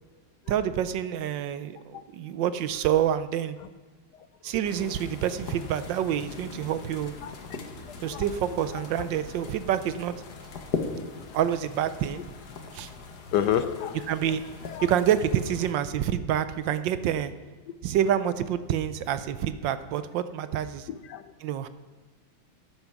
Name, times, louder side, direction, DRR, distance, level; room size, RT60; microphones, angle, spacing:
voice 1, 0.5-3.6 4.4-7.2 8.0-10.1 11.3-12.2 12.7-12.9 14.1-14.4 14.8-17.3 17.8-20.9 21.4-21.7, right 10 dB, 75° right, 13 dB, 1.3 m, -27 dB
sound 1, 4.6-15.7, left 4 dB, 55° left, 1.7 m, -40 dB
voice 2, 13.3-14.0 14.6-14.9 16.3-16.4 20.9-21.3, left 10 dB, 70° left, 11 dB, 1.0 m, -29 dB
13.5 x 8.8 x 6.0 m, 1.3 s
omnidirectional pair, 2.2 m